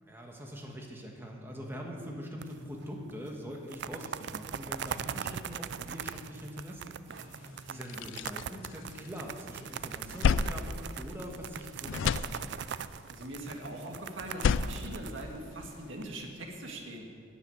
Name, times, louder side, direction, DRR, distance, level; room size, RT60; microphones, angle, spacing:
voice 1, 0.0-7.0 7.3-12.5, equal, 10° right, 0 dB, 1.3 m, -43 dB
sound 1, 2.4-2.8 3.1-3.2 3.5-16.0, right 8 dB, 55° right, 0.3 m, -41 dB
voice 2, 7.1-7.8 13.1-17.1, right 1 dB, 75° right, 1 dB, 1.8 m, -42 dB
sound 2, 7.2-7.3 7.7-9.4 9.7-11.6 11.8-12.9 14.2-15.8, left 6 dB, 75° left, 0.3 m, -31 dB
12.0 x 7.0 x 9.4 m, 2.3 s
head